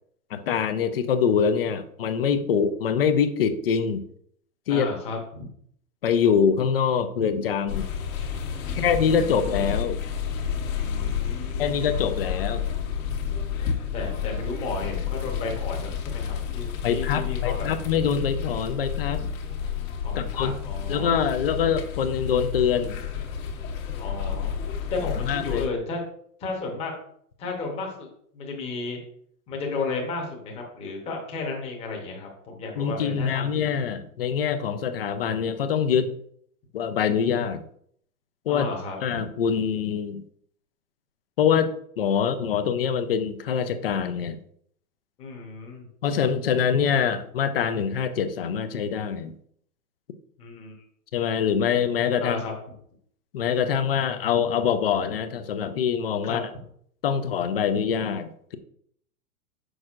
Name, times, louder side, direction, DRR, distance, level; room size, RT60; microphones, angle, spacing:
voice 1, 0.3-4.0 4.7-4.9 6.0-7.9 8.7-10.0 11.6-12.6 16.8-19.3 20.2-20.5 20.9-23.0 25.3-25.6 32.8-36.1 36.7-37.6 38.5-38.7 39.0-40.2 41.4-44.4 46.0-49.3 51.1-52.4 53.3-56.5 57.0-58.6, left 7 dB, 40° left, 10 dB, 0.4 m, -24 dB
voice 2, 4.7-5.5 8.6-9.7 10.7-11.8 13.9-17.7 20.0-21.2 24.0-24.5 24.9-26.0 26.4-26.9 27.4-28.1 28.3-29.0 29.5-33.7 38.5-39.0 45.2-45.8 50.4-50.8 52.2-52.5 56.2-56.4, left 3 dB, 15° left, 0 dB, 0.9 m, -33 dB
sound 1, 7.7-25.7, left 7 dB, 55° left, 1.5 m, -30 dB
6.3 x 6.3 x 2.4 m, 0.65 s
hypercardioid pair, 160°, 46 cm